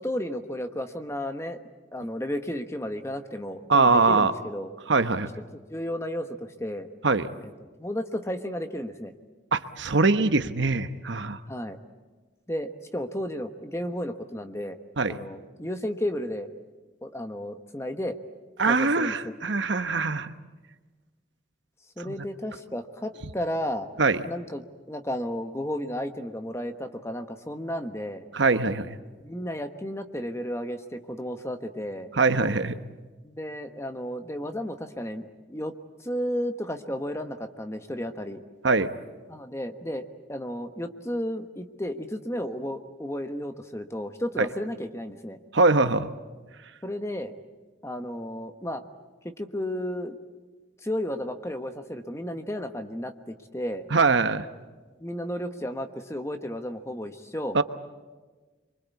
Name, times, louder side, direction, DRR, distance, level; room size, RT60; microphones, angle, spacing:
voice 1, 0.0-1.6 1.9-4.7 5.7-6.9 7.4-7.5 7.8-9.1 11.5-11.8 12.5-14.8 15.1-16.5 17.0-18.2 18.6-19.3 22.0-23.9 24.2-28.3 29.2-32.1 33.2-35.7 36.0-38.4 39.3-45.4 46.8-47.3 47.8-48.8 49.4-50.2 50.8-53.9 55.0-57.6, equal, 15° left, 7 dB, 1.2 m, -33 dB
voice 2, 3.7-4.3 4.9-5.3 7.0-7.3 9.5-11.4 15.0-15.2 18.6-20.3 22.1-22.2 24.0-24.2 28.3-29.0 32.1-32.8 38.6-38.9 44.4-44.5 45.5-46.1 53.9-54.4 57.5-57.6, right 3 dB, 70° right, 10 dB, 1.0 m, -22 dB
26.0 x 24.0 x 8.4 m, 1.3 s
head